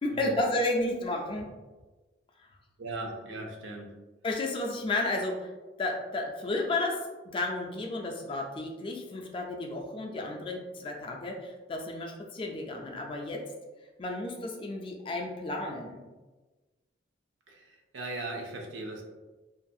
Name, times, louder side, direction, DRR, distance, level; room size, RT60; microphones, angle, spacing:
voice 1, 0.0-1.5 3.0-3.1 4.2-5.5 5.8-7.1 7.3-13.4 14.0-16.0, left 2 dB, 30° left, 1 dB, 0.3 m, -32 dB
voice 2, 2.8-3.9 17.5-19.0, right 2 dB, 90° right, 1 dB, 0.5 m, -38 dB
2.4 x 2.3 x 2.6 m, 1.2 s
head